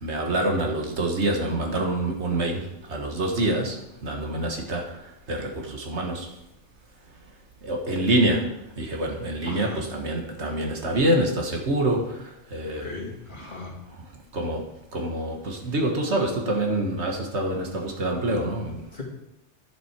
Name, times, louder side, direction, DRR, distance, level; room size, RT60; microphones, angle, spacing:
voice 1, 0.0-2.6 2.9-3.7 4.0-4.8 5.3-6.3 7.6-12.2 12.5-12.9 14.3-14.6 14.9-18.8, right 1 dB, 65° right, 1 dB, 1.7 m, -26 dB
voice 2, 9.4-9.8 11.7-11.9 12.7-13.8 18.9-19.0, left 3 dB, 40° left, -2 dB, 2.1 m, -38 dB
10.0 x 7.6 x 4.5 m, 0.84 s
omnidirectional pair, 1.2 m